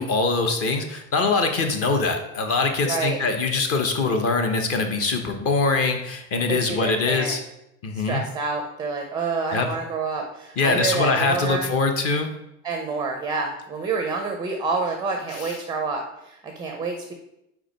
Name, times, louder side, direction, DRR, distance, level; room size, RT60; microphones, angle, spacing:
voice 1, 0.0-7.4 7.8-8.2 9.5-9.7 10.6-12.3 15.3-15.6, left 3 dB, 35° left, 6 dB, 1.0 m, -23 dB
voice 2, 2.8-3.2 6.5-7.3 8.0-11.7 12.6-17.1, right 4 dB, 10° right, 3 dB, 0.5 m, -28 dB
5.0 x 4.5 x 5.1 m, 0.83 s
supercardioid pair, 130°, 42 cm